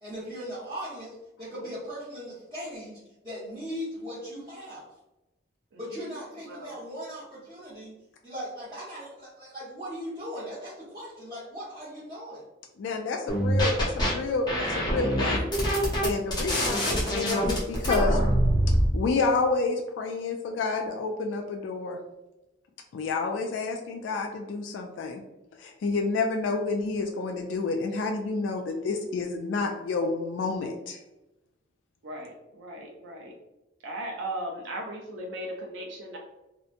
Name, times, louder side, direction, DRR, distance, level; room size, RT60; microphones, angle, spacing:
voice 1, 0.0-3.0 3.2-4.9 5.8-7.9 8.2-12.4, equal, 20° right, -13 dB, 0.8 m, -38 dB
voice 2, 12.8-15.5 16.0-18.2 18.9-22.0 22.9-25.2 25.6-31.0, left 3 dB, 75° left, 2 dB, 0.3 m, -29 dB
sound 1, 13.3-14.1 14.5-18.9, equal, 20° left, 0.5 m, -25 dB
voice 3, 32.0-33.3 33.8-36.2, right 1 dB, 70° right, 0 dB, 0.4 m, -37 dB
2.8 x 2.1 x 2.4 m, 0.98 s
head